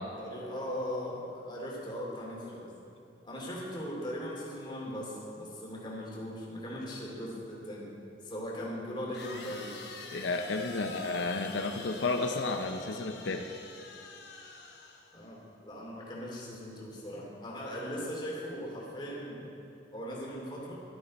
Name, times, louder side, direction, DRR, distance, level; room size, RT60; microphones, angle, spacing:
voice 1, 0.2-2.7 3.2-7.9 8.2-9.7 10.7-11.0 15.1-19.4 19.9-20.7, equal, 25° left, -4 dB, 2.7 m, -39 dB
sound 1, 9.1-15.3, left 4 dB, 60° left, 1.3 m, -47 dB
voice 2, 10.1-13.5, left 3 dB, 90° left, 5 dB, 0.6 m, -32 dB
14.0 x 12.0 x 4.2 m, 2.8 s
head